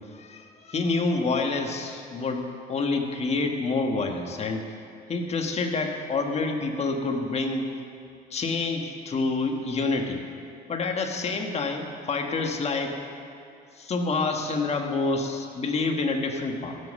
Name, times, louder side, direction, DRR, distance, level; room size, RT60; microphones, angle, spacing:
voice 1, 0.0-4.7 5.1-7.7 8.3-10.3 10.7-13.0 13.7-16.8, left 3 dB, 40° left, 3 dB, 1.5 m, -28 dB
16.0 x 7.6 x 6.5 m, 2.5 s
cardioid pair, 110°, 17 cm